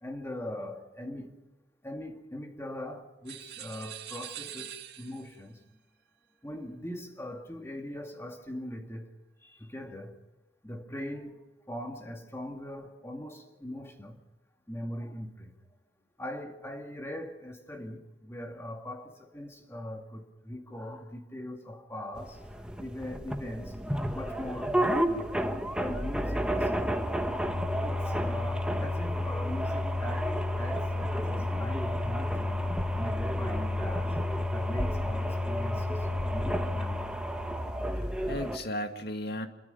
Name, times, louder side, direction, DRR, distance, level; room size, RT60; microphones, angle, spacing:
voice 1, 0.0-1.4 1.8-5.6 6.4-9.1 9.4-10.1 10.6-14.2 14.7-15.5 16.2-23.8 24.1-27.2 27.8-32.7 33.0-34.2 34.5-37.3, left 1 dB, 15° left, 2.1 m, -41 dB
sound 1, 3.2-5.4, right 11 dB, 65° right, 2.3 m, -43 dB
sound 2, 22.1-38.6, equal, 5° right, 1.3 m, -30 dB
voice 2, 37.6-39.5, left 1 dB, 60° left, 2.2 m, -37 dB
27.0 x 23.0 x 5.6 m
head